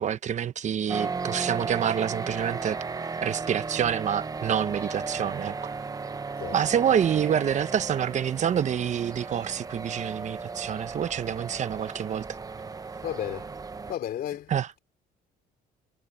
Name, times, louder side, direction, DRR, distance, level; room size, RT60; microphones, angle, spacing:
voice 1, 0.0-2.8 3.2-5.5 6.5-12.2 14.5-14.7, right 9 dB, 45° right, 1.1 m, -27 dB
sound 1, 0.9-13.9, right 4 dB, 20° right, 0.9 m, -35 dB
voice 2, 13.0-13.5 13.9-14.5, left 11 dB, 65° left, 3.2 m, -33 dB
cardioid pair, 110°, 17 cm